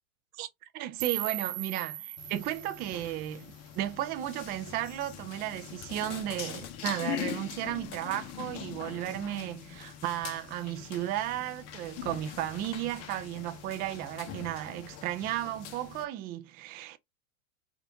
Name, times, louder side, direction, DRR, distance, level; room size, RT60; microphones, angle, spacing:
voice 1, 0.7-17.0, right 13 dB, 25° right, 0.4 m, -34 dB
sound 1, 1.0-4.0, right 13 dB, 50° right, 0.7 m, -39 dB
sound 2, 2.2-16.0, left 10 dB, 35° left, 0.9 m, -42 dB
4.7 x 2.6 x 2.8 m
hypercardioid pair, 105°, 43 cm